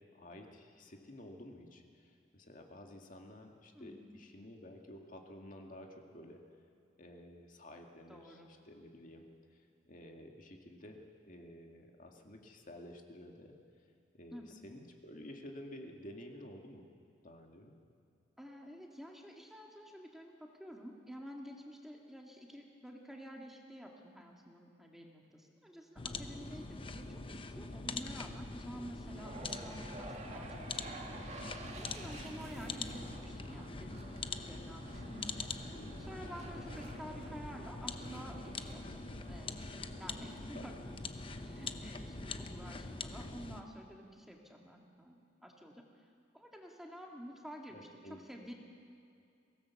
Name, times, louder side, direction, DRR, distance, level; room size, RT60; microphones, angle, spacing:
voice 1, 0.1-6.4 7.0-13.6 14.1-16.9 17.2-17.7 27.1-27.6 35.7-36.3 40.2-40.3 40.5-40.7 47.7-48.2, left 1 dB, 50° left, 2 dB, 2.0 m, -52 dB
voice 2, 3.7-4.0 8.1-8.5 14.3-14.5 18.4-31.2 31.8-35.5 36.0-40.8 41.4-45.8 46.3-47.9 48.2-48.5, equal, ahead, 0 dB, 2.0 m, -50 dB
sound 1, 26.0-43.6, left 3 dB, 30° left, 0.8 m, -44 dB
sound 2, 29.1-43.3, right 2 dB, 40° right, 2.2 m, -51 dB
23.0 x 17.5 x 7.2 m, 2.5 s
head